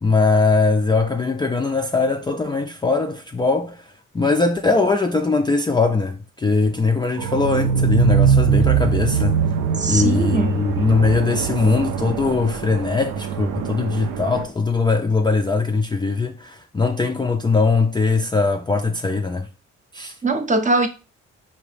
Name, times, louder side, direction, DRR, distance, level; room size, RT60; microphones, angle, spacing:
voice 1, 0.0-9.3 9.9-19.5 19.9-20.1, left 4 dB, 15° left, 0.3 m, -20 dB
sound 1, 7.2-14.4, right 7 dB, 80° right, 0.6 m, -22 dB
voice 2, 9.8-10.5 20.2-20.9, right 2 dB, 25° right, 0.7 m, -21 dB
4.7 x 2.7 x 3.4 m
cardioid pair, 90°, 30 cm